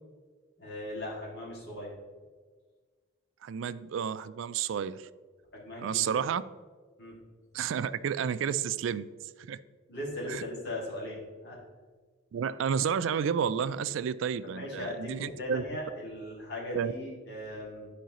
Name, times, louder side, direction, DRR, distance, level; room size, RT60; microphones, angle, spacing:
voice 1, 0.6-1.9 5.5-6.1 7.0-7.2 9.9-11.6 14.5-17.9, left 1 dB, 55° left, -4 dB, 2.2 m, -38 dB
voice 2, 3.4-5.1 5.8-6.4 7.5-9.1 9.5-9.6 10.3-10.4 12.3-15.6 16.7-16.9, right 7 dB, 75° right, 15 dB, 0.3 m, -31 dB
12.0 x 4.9 x 3.0 m, 1.5 s
head